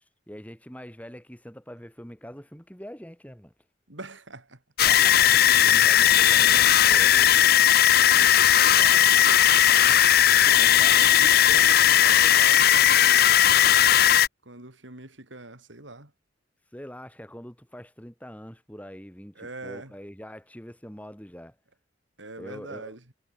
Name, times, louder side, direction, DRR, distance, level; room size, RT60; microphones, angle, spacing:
voice 1, 0.3-3.5 4.8-7.1 9.9-10.1 10.6-11.0 11.9-12.4 16.7-21.6 22.4-23.0, equal, 10° left, 6.0 m, -43 dB
voice 2, 3.9-4.6 5.5-5.8 6.9-10.1 10.9-13.4 14.4-16.1 19.4-19.9 22.2-23.0, right 2 dB, 85° right, 4.2 m, -43 dB
sound 1, 4.8-14.3, left 10 dB, 55° left, 0.7 m, -17 dB
head